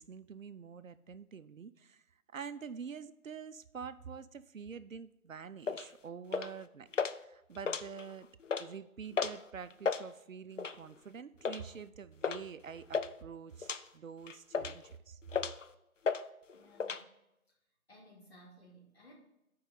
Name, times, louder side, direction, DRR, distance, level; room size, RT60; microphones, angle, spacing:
voice 1, 0.0-2.0 2.3-6.9 7.2-8.3 8.6-15.2, right 6 dB, 65° right, 13 dB, 0.6 m, -46 dB
sound 1, 5.7-5.9 6.3-6.6 6.9-7.2 7.6-8.1 8.4-8.7 9.2-9.4 9.7-10.0 10.6-10.9 11.4-11.6 12.2-12.4 12.7-13.1 13.6-13.8 14.3-14.9 15.3-15.7 16.1-16.2 16.5-17.0, left 5 dB, 60° left, 0.5 m, -34 dB
voice 2, 16.5-17.0 17.9-19.1, equal, 45° left, -3 dB, 2.6 m, -58 dB
8.6 x 4.7 x 5.3 m, 0.87 s
figure-of-eight pair, 155°, 43 cm